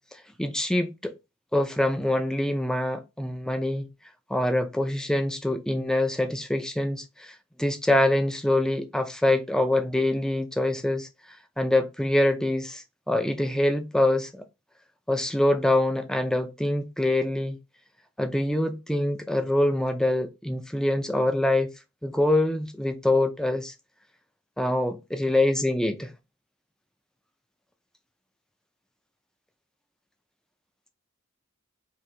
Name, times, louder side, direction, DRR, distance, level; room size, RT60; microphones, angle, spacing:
voice 1, 0.1-1.2 1.5-3.9 4.3-11.1 11.6-14.4 15.1-17.6 18.2-21.7 22.0-23.7 24.6-26.1, left 1 dB, 5° left, 0.3 m, -25 dB
4.5 x 2.9 x 2.7 m
head